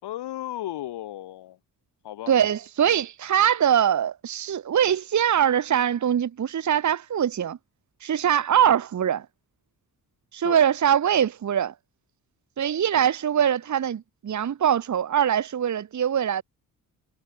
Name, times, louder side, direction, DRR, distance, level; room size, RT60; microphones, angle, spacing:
voice 1, 0.0-1.6 2.0-2.3 10.4-10.6, left 13 dB, 85° left, 5.4 m, -34 dB
voice 2, 2.3-7.6 8.0-9.3 10.3-11.7 12.6-16.4, right 9 dB, 45° right, 1.0 m, -22 dB
supercardioid pair, 50°, 39 cm